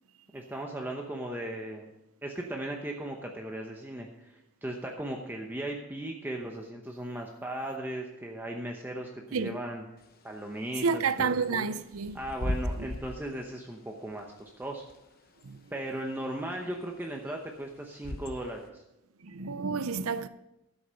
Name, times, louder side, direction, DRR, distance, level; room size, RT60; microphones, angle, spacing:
voice 1, 0.3-1.9 2.2-9.8 10.2-11.7 12.1-14.8 15.7-18.8, right 1 dB, 10° right, 0.9 m, -37 dB
Bird / Wind, 10.0-18.7, left 1 dB, 45° left, 1.0 m, -40 dB
voice 2, 10.8-12.2 12.8-12.9 15.4-15.6 19.2-20.3, right 5 dB, 80° right, 0.6 m, -30 dB
12.0 x 8.1 x 5.6 m
head